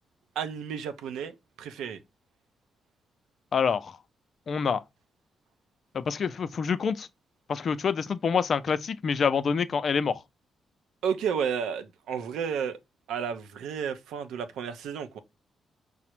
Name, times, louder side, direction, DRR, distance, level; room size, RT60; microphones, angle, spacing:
voice 1, 0.4-2.0 11.0-12.8 13.1-15.2, right 7 dB, 85° right, 0.5 m, -32 dB
voice 2, 3.5-4.0 4.5-4.8 5.9-7.1 7.5-10.2, left 6 dB, 60° left, 0.4 m, -26 dB
4.9 x 2.0 x 4.4 m
supercardioid pair, 60°, 0 cm